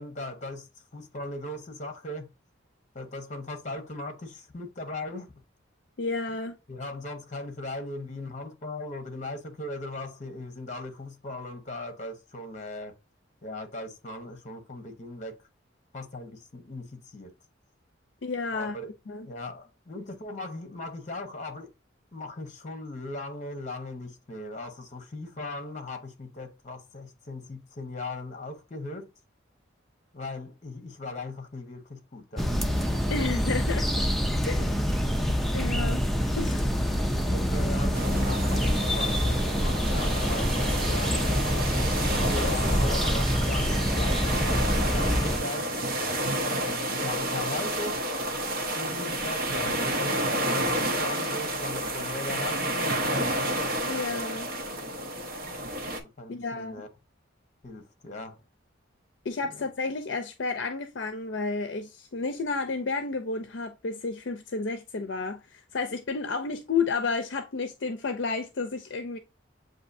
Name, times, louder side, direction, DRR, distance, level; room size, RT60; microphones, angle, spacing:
voice 1, 0.0-2.3 2.9-5.3 6.7-12.9 13.4-15.4 15.9-17.3 18.5-18.9 19.2-21.7 22.1-29.1 30.1-32.8 34.6-34.7 37.1-45.7 46.6-48.1 48.8-53.4 55.4-55.7 56.0-56.9 57.6-58.4, left 2 dB, 40° left, 1.0 m, -38 dB
voice 2, 6.0-6.6 18.2-18.8 19.1-19.3 33.1-33.9 34.4-34.7 35.5-36.0 36.4-36.7 53.9-54.6 56.3-56.8 59.2-69.2, left 4 dB, 65° left, 0.5 m, -31 dB
sound 1, 32.4-45.4, equal, ahead, 0.4 m, -26 dB
sound 2, 37.9-56.0, right 1 dB, 50° right, 0.9 m, -30 dB
7.8 x 2.6 x 2.6 m
head